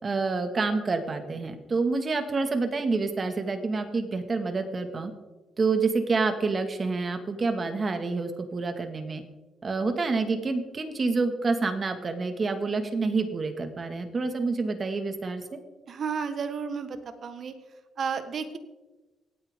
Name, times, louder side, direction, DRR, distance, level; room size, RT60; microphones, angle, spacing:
voice 1, 0.0-5.1 5.6-9.2 9.6-15.4, right 3 dB, 35° right, 7 dB, 1.9 m, -28 dB
voice 2, 15.9-17.5 18.0-18.6, right 6 dB, 55° right, 9 dB, 1.4 m, -32 dB
24.5 x 9.2 x 3.7 m, 1.2 s
cardioid pair, 90°, 0 cm